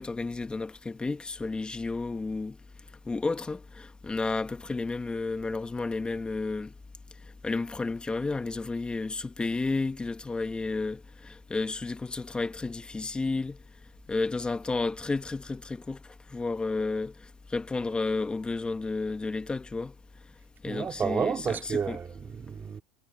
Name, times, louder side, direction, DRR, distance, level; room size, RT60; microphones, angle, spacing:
voice 1, 0.0-2.6 3.0-6.7 7.4-13.6 14.1-16.0 16.3-19.9 20.6-22.0, left 3 dB, 15° left, 1.6 m, -32 dB
voice 2, 20.7-22.8, right 6 dB, 25° right, 3.5 m, -31 dB
supercardioid pair, 105°, 7 cm